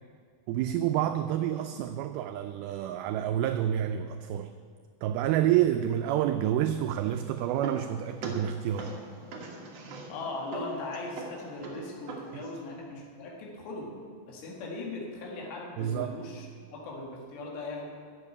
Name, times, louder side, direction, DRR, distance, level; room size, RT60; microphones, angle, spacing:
voice 1, 0.5-4.5 5.0-9.0 15.8-16.2, right 11 dB, 85° right, 7 dB, 2.2 m, -28 dB
sound 1, 6.9-12.7, right 2 dB, 55° right, 1.9 m, -42 dB
voice 2, 10.1-13.9 14.3-16.5 16.7-17.9, left 2 dB, 85° left, -2 dB, 4.0 m, -39 dB
12.0 x 7.4 x 8.3 m, 2.2 s
omnidirectional pair, 4.8 m